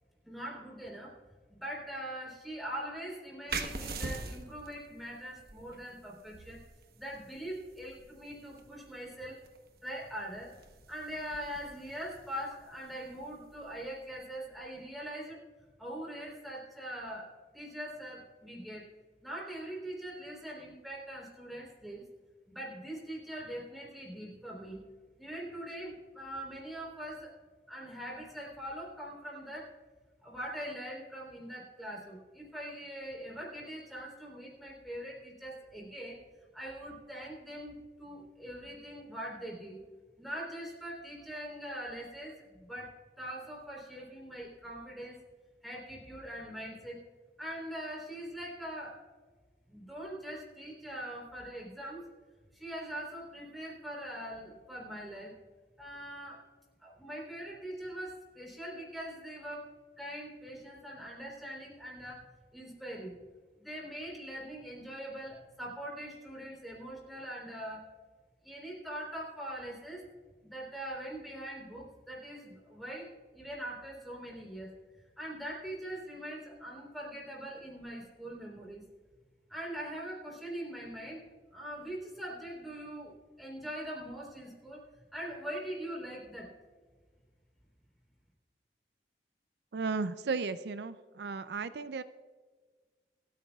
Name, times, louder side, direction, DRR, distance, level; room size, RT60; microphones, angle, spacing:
voice 1, 0.2-1.2 1.5-6.6 6.9-9.4 9.8-10.5 10.9-15.4 15.8-18.8 19.2-22.0 22.5-24.8 25.2-27.3 27.7-29.7 30.2-36.2 36.5-39.8 40.2-45.2 45.6-47.0 47.4-49.0 49.7-52.1 52.5-55.4 55.8-56.4 56.8-62.2 62.5-63.2 63.6-67.9 68.4-70.1 70.4-74.7 75.0-78.8 79.5-86.5, right 1 dB, ahead, -3 dB, 3.7 m, -42 dB
sound 1, 3.5-14.8, right 3 dB, 60° right, 1.1 m, -45 dB
voice 2, 89.7-92.0, right 4 dB, 75° right, 12 dB, 0.4 m, -35 dB
27.5 x 9.4 x 2.4 m, 1.5 s
head